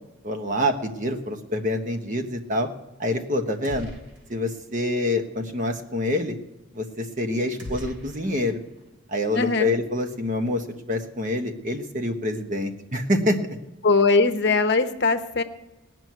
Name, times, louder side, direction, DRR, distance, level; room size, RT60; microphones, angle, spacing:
voice 1, 0.2-2.7 3.0-3.9 4.3-6.4 6.7-8.6 9.1-13.4, left 1 dB, 40° right, 5 dB, 1.2 m, -26 dB
sound 1, 3.6-4.5 4.8-4.9 7.6-8.9, left 1 dB, 55° right, 3.0 m, -40 dB
voice 2, 9.3-9.7 13.8-15.4, left 3 dB, 55° left, 8 dB, 0.8 m, -20 dB
18.5 x 6.1 x 9.4 m, 1.1 s
head